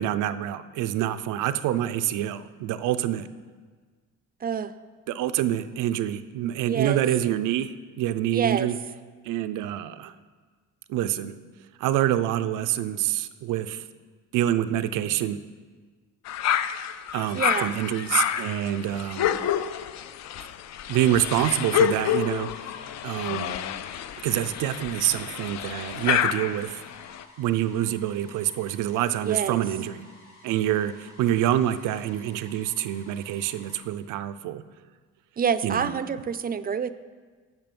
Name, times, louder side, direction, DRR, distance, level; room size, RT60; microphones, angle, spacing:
voice 1, 0.0-3.3 5.1-8.8 9.2-10.1 10.9-11.3 11.8-13.9 14.3-15.4 17.1-19.4 20.9-22.5 23.0-23.6 24.2-26.8 27.4-30.0 30.4-34.6 35.6-36.0, right 12 dB, 90° right, 12 dB, 0.5 m, -26 dB
voice 2, 4.4-4.7 6.6-7.0 8.3-8.7 17.3-17.7 29.3-29.6 35.4-36.9, right 7 dB, 30° right, 13 dB, 0.4 m, -27 dB
sound 1, 16.3-27.2, left 10 dB, 65° left, 0.4 m, -28 dB
sound 2, 22.2-33.8, left 2 dB, 90° left, 2.0 m, -53 dB
9.0 x 6.1 x 5.3 m, 1.5 s
cardioid pair, 90°, 30 cm